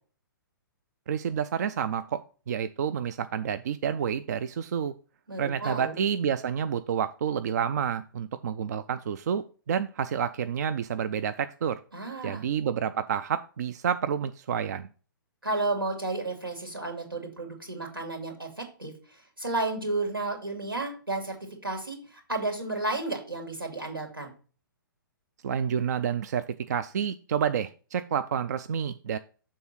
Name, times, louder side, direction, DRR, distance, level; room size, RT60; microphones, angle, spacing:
voice 1, 1.1-4.9 5.4-11.8 12.2-14.9 25.4-29.2, right 8 dB, 50° right, 12 dB, 0.4 m, -29 dB
voice 2, 5.3-6.0 11.9-12.4 15.4-18.9 19.4-21.4 21.6-24.3, right 2 dB, 90° right, 3 dB, 2.6 m, -32 dB
6.9 x 3.7 x 5.4 m, 0.38 s
figure-of-eight pair, 120°, 12 cm